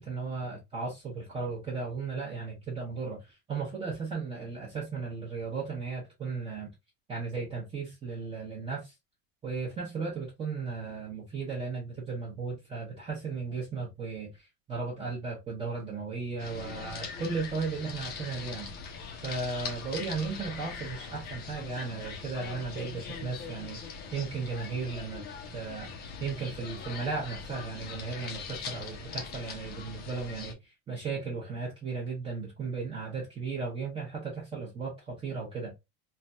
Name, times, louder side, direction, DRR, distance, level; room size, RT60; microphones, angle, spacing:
voice 1, 0.0-6.7 7.1-8.9 9.4-18.7 19.2-25.3 25.5-25.9 26.2-35.7, right 4 dB, 15° right, 0.8 m, -36 dB
sound 1, 16.4-30.5, left 5 dB, 30° left, 0.6 m, -41 dB
3.3 x 2.2 x 2.5 m
cardioid pair, 155°, 31 cm